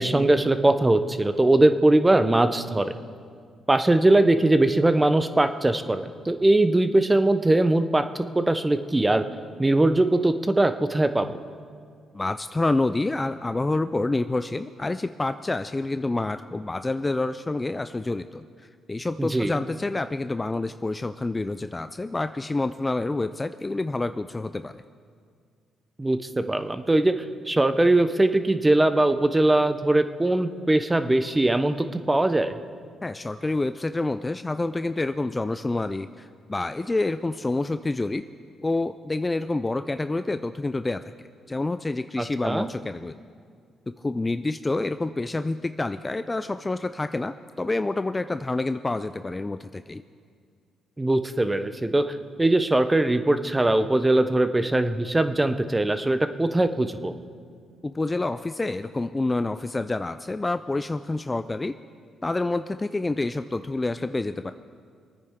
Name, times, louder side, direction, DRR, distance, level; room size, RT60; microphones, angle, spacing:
voice 1, 0.0-2.9 3.7-8.0 8.3-9.3 9.6-11.3 19.2-19.5 26.0-27.1 27.5-32.6 42.2-42.7 51.0-57.1, right 2 dB, 15° right, 10 dB, 0.8 m, -21 dB
voice 2, 12.1-18.4 18.9-24.8 33.0-38.2 38.6-41.0 41.5-43.1 44.0-50.0 57.8-61.7 62.2-64.5, left 2 dB, 20° left, 10 dB, 0.4 m, -28 dB
25.0 x 9.4 x 3.7 m, 2.1 s
cardioid pair, 90°, 0 cm